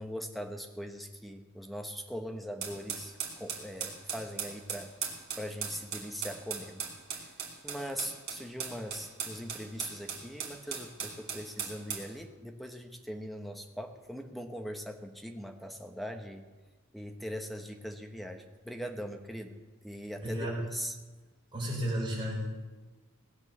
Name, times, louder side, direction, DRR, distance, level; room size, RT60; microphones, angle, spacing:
voice 1, 0.0-4.9 5.4-6.9 7.1-7.3 7.6-16.4 16.9-21.0, equal, ahead, 4 dB, 1.2 m, -41 dB
sound 1, 2.6-12.1, right 7 dB, 45° right, 3.0 m, -38 dB
voice 2, 20.2-20.7 21.5-22.6, equal, 20° right, -4 dB, 5.5 m, -33 dB
18.5 x 8.8 x 7.3 m, 1.2 s
head